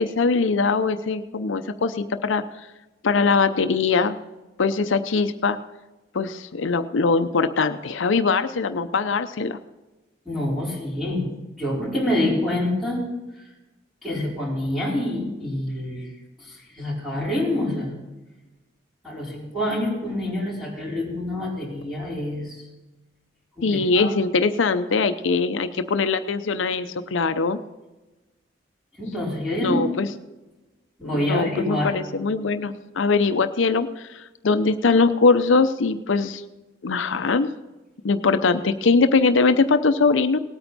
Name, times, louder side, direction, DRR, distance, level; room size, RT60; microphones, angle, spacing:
voice 1, 0.0-2.4 3.0-4.2 4.6-5.6 6.1-9.6 23.6-27.6 29.6-30.1 31.0-36.4 36.8-37.5 38.0-40.4, left 4 dB, 90° left, 9 dB, 0.6 m, -21 dB
voice 2, 10.2-11.3 11.6-13.0 13.3-13.5 14.0-16.1 16.4-17.9 19.0-22.7 23.6-24.1 29.0-29.9 31.0-31.9, left 1 dB, ahead, -6 dB, 4.4 m, -27 dB
18.5 x 8.9 x 4.1 m, 1.1 s
head